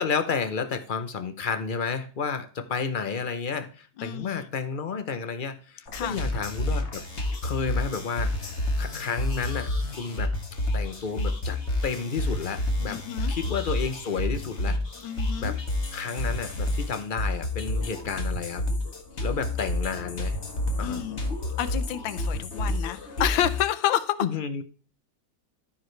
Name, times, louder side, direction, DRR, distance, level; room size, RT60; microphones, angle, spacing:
voice 1, 0.0-7.0 7.4-8.3 8.8-9.7 10.0-10.3 10.7-13.0 13.3-14.8 15.4-15.6 15.9-18.6 19.2-20.4 20.8-21.0 24.2-24.6, left 5 dB, 60° left, 0.5 m, -31 dB
voice 2, 4.0-4.5 5.9-6.2 12.9-13.3 15.0-15.6 20.8-21.2 21.6-24.2, left 11 dB, 90° left, 1.5 m, -29 dB
sound 1, 5.9-23.6, left 1 dB, 40° left, 1.6 m, -29 dB
13.5 x 4.9 x 3.2 m
omnidirectional pair, 2.0 m